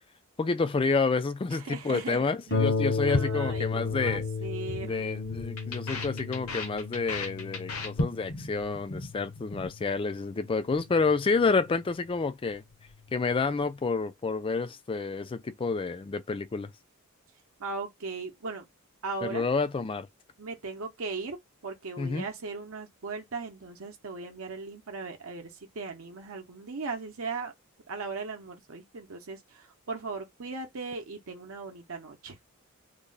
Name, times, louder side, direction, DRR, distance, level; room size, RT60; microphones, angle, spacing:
voice 1, 0.4-4.2 4.8-12.6 13.1-16.7 19.2-20.1 22.0-22.3, left 4 dB, 25° left, 0.3 m, -29 dB
voice 2, 1.5-2.6 3.1-5.1 17.6-18.7 19.0-19.5 20.4-21.4 21.6-27.5 27.9-32.4, right 4 dB, 65° right, 0.7 m, -38 dB
Harp, 2.5-11.7 12.5-12.6 13.1-13.2, left 4 dB, 45° left, 0.7 m, -34 dB
sound 1, 3.1-4.3 4.5-4.9 5.1-8.5 8.8-9.1 9.4-9.7, left 2 dB, 80° left, 1.1 m, -34 dB
3.3 x 2.1 x 3.8 m
head